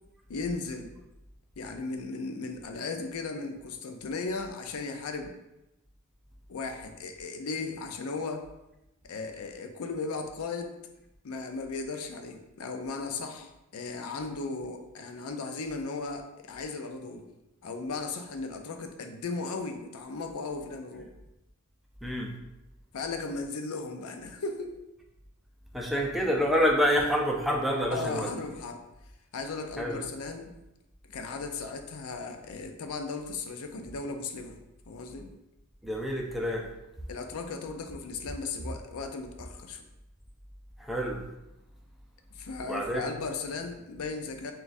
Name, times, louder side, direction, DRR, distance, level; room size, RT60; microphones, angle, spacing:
voice 1, 0.3-0.9 1.6-5.4 6.5-8.5 9.0-10.8 11.2-17.3 17.6-21.1 22.9-24.7 27.9-28.8 29.3-30.6 31.1-34.6 34.9-35.3 37.1-39.8 42.3-44.5, left 3 dB, 80° left, 5 dB, 0.5 m, -36 dB
voice 2, 22.0-22.3 25.7-28.3 29.8-30.0 35.8-36.7 40.8-41.2 42.7-43.1, equal, ahead, -1 dB, 0.4 m, -27 dB
6.1 x 2.3 x 2.5 m, 0.93 s
head